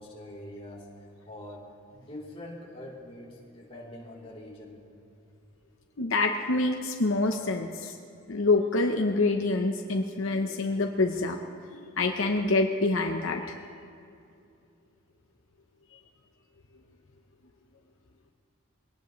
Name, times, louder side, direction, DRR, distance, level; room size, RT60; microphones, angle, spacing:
voice 1, 0.0-4.8, left 1 dB, 25° left, -6 dB, 3.2 m, -44 dB
voice 2, 6.0-8.0 8.3-11.4 11.7-13.4 15.9-16.0, left 2 dB, 70° left, 3 dB, 0.8 m, -26 dB
23.0 x 18.0 x 3.1 m, 2.5 s
head